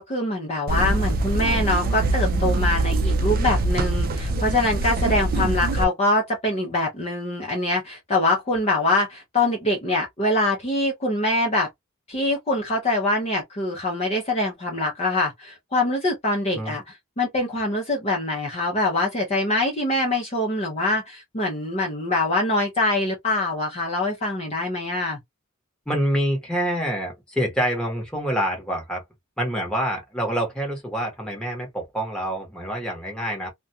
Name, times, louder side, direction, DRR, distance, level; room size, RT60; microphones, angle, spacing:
voice 1, 0.0-11.7 12.1-16.8 17.2-25.2, left 2 dB, 30° left, 0.6 m, -24 dB
sound 1, 0.7-5.8, right 2 dB, 45° right, 0.4 m, -23 dB
voice 2, 25.9-29.0 29.4-33.5, equal, 5° left, 1.0 m, -26 dB
2.4 x 2.2 x 2.6 m
head